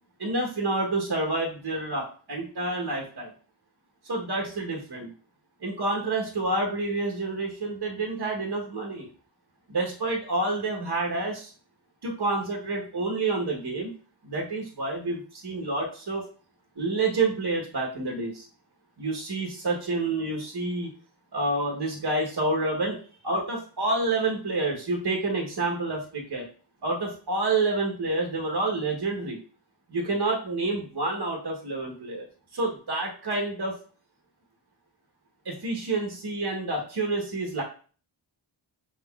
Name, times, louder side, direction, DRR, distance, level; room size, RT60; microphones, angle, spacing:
voice 1, 0.2-3.3 4.0-5.1 5.6-9.1 9.7-11.5 12.0-13.9 14.2-16.2 16.8-18.5 19.0-20.9 21.3-26.5 26.8-29.4 29.9-32.3 32.5-33.8 35.4-37.6, right 2 dB, 50° right, -1 dB, 1.1 m, -28 dB
5.0 x 3.6 x 2.3 m, 0.40 s
cardioid pair, 40°, 49 cm